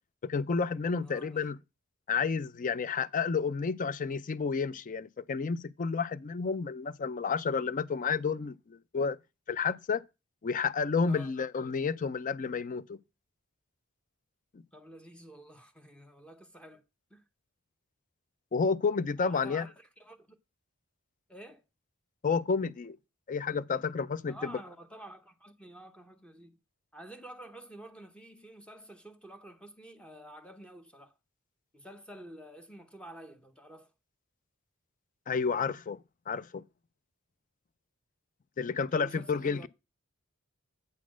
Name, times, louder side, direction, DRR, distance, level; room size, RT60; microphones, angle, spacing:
voice 1, 0.2-1.6 2.1-9.2 9.5-10.0 10.4-13.0 18.5-19.6 22.2-23.0 23.3-24.6 35.3-36.0 36.3-36.6 38.6-39.7, left 5 dB, 40° left, 0.4 m, -30 dB
voice 2, 1.0-1.4 11.1-11.3 14.7-16.8 17.1-17.2 19.2-20.4 21.3-21.6 24.3-26.6 26.9-31.2 31.7-33.9 38.9-39.7, right 1 dB, 5° left, 0.7 m, -49 dB
8.5 x 4.2 x 6.1 m
head